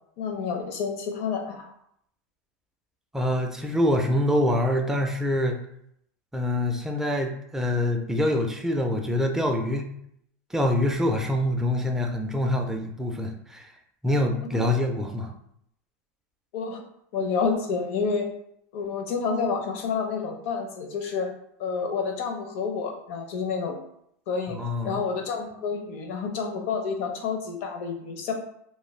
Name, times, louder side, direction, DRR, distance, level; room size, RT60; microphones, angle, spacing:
voice 1, 0.2-1.7 14.5-14.6 16.5-16.8 17.1-18.3 18.7-21.3 21.6-23.8 24.3-24.6 24.8-28.3, left 5 dB, 70° left, 3 dB, 0.6 m, -29 dB
voice 2, 3.1-5.6 6.3-9.9 10.5-13.7 14.0-15.3 24.5-25.0, left 1 dB, 5° right, 2 dB, 0.3 m, -25 dB
2.5 x 2.2 x 3.2 m, 0.72 s
supercardioid pair, 130°, 8 cm